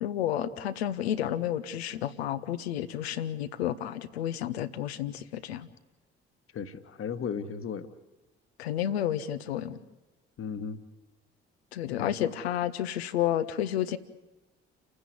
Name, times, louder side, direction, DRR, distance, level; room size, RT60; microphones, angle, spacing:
voice 1, 0.0-5.7 8.6-9.8 11.7-14.0, left 11 dB, 75° left, 12 dB, 0.9 m, -31 dB
voice 2, 6.5-7.9 10.4-10.8 11.9-12.3, left 6 dB, 45° left, 9 dB, 1.5 m, -36 dB
30.0 x 10.0 x 9.7 m, 1.1 s
figure-of-eight pair, 45°, 32 cm